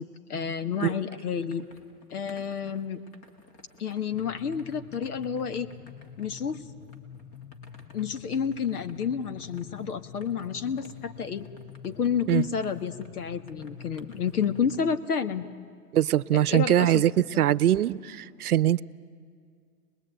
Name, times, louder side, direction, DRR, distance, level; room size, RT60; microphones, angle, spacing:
voice 1, 0.0-1.6 2.1-3.0 3.8-5.7 6.2-6.6 7.9-11.5 11.8-15.5 16.5-17.0 17.3-17.4, left 7 dB, 80° left, 11 dB, 1.7 m, -30 dB
sound 1, 0.9-14.9, left 2 dB, 30° left, 2.2 m, -56 dB
sound 2, 4.1-15.0, left 7 dB, 45° left, 0.7 m, -46 dB
voice 2, 15.9-18.8, right 12 dB, 75° right, 19 dB, 0.8 m, -22 dB
25.5 x 20.5 x 9.1 m, 2.1 s
hypercardioid pair, 155°, 45 cm